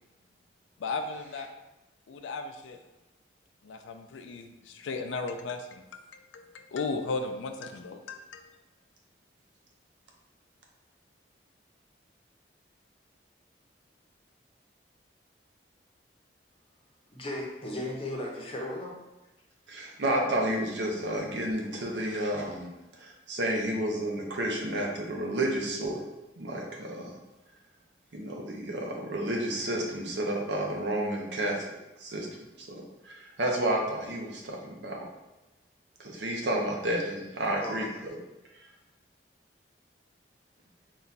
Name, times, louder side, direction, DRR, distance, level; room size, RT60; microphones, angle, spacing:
voice 1, 0.8-1.5 2.1-2.8 3.6-8.6, left 3 dB, 85° left, 6 dB, 0.4 m, -36 dB
voice 2, 17.1-18.9 37.6-37.8, left 1 dB, 30° left, -2 dB, 0.7 m, -36 dB
voice 3, 19.7-22.7 23.0-26.0 26.4-27.1 28.1-31.7 32.0-32.3 32.6-35.0 36.0-37.9, right 1 dB, 70° right, 0 dB, 0.7 m, -31 dB
4.0 x 2.3 x 4.0 m, 1.0 s
head